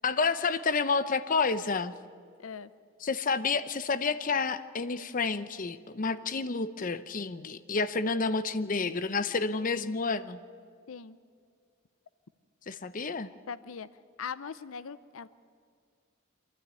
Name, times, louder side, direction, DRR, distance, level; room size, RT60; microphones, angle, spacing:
voice 1, 0.0-1.9 3.0-10.4 12.7-13.3, left 4 dB, 40° left, 12 dB, 0.7 m, -29 dB
voice 2, 2.4-2.7 10.9-11.2 13.5-13.9 14.2-15.3, left 6 dB, 80° left, 16 dB, 0.6 m, -40 dB
25.5 x 13.0 x 9.7 m, 2.2 s
head